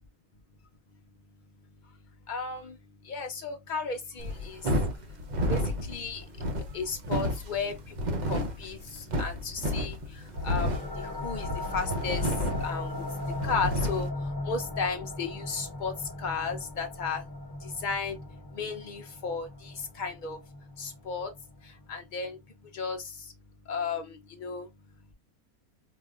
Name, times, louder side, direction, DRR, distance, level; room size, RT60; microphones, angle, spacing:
voice 1, 2.3-2.7 3.1-4.6 5.5-5.6 5.9-6.2 6.7-7.7 8.3-10.0 10.4-10.7 11.2-11.5 11.7-12.2 12.6-13.0 13.4-14.1 14.5-15.9 16.2-17.2 17.8-18.2 18.5-20.4 20.8-21.3 21.9-22.4 22.7-23.0 23.7-24.1 24.4-24.7, left 5 dB, 85° left, 0.4 m, -33 dB
sound 1, 4.2-14.1, equal, 45° right, 0.6 m, -31 dB
sound 2, 10.3-21.7, left 2 dB, 25° left, 0.6 m, -38 dB
5.0 x 2.4 x 2.4 m
omnidirectional pair, 1.6 m